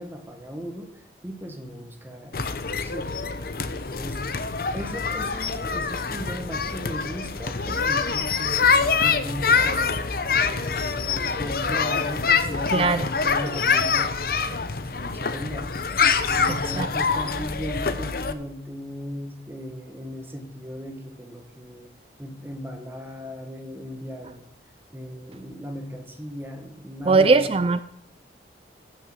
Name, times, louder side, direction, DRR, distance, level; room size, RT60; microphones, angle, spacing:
voice 1, 0.0-3.1 3.7-4.4 4.7-9.9 10.3-15.7 16.3-21.9 22.2-24.4 24.9-27.4, equal, 10° right, 5 dB, 1.3 m, -37 dB
sound 1, 2.3-18.3, left 5 dB, 50° left, 0.8 m, -25 dB
voice 2, 12.7-13.1 16.8-16.9 27.1-27.8, right 3 dB, 30° right, 13 dB, 0.3 m, -19 dB
15.5 x 6.5 x 6.2 m, 0.76 s
head